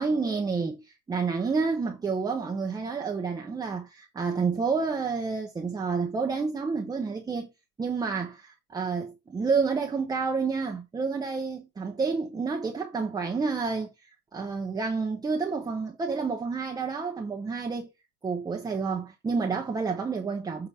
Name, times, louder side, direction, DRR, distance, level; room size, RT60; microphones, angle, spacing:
voice 1, 0.0-7.5 7.8-13.9 14.3-17.9 18.2-20.7, right 4 dB, 10° right, 0.8 m, -29 dB
7.2 x 3.9 x 4.7 m
hypercardioid pair, 100°, 46 cm